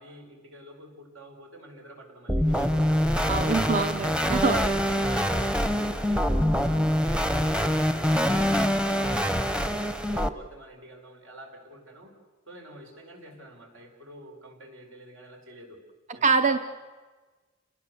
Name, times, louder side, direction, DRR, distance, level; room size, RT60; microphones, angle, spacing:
voice 1, 0.0-3.6 4.5-9.8 10.1-12.1 12.5-15.8 16.1-16.6, right 1 dB, 80° right, 2 dB, 5.6 m, -47 dB
sound 1, 2.3-10.3, equal, 5° right, 0.8 m, -25 dB
voice 2, 3.3-4.7 16.2-16.6, right 4 dB, 35° right, 9 dB, 0.7 m, -24 dB
30.0 x 20.0 x 7.0 m, 1.4 s
head